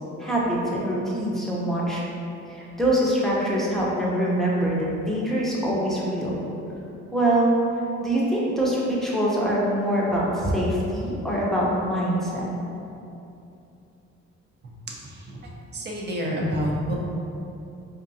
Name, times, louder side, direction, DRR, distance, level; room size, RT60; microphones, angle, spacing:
voice 1, 0.2-2.0 2.5-6.4 7.1-7.5 8.0-12.5, right 1 dB, ahead, -6 dB, 0.8 m, -24 dB
voice 2, 15.0-15.4 15.7-17.0, equal, 35° right, -2 dB, 0.7 m, -28 dB
4.4 x 2.5 x 2.6 m, 2.7 s
cardioid pair, 90°, 30 cm